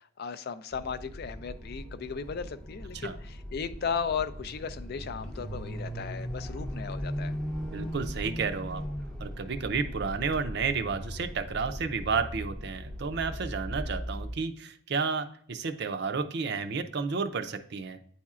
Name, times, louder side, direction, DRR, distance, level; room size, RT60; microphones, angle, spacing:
voice 1, 0.0-7.3, left 6 dB, 50° left, 11 dB, 0.4 m, -36 dB
sound 1, 0.7-14.4, equal, 5° left, 0.6 m, -38 dB
voice 2, 7.7-8.8 9.2-18.0, right 5 dB, 55° right, 9 dB, 0.5 m, -31 dB
9.2 x 4.3 x 2.4 m, 0.62 s
head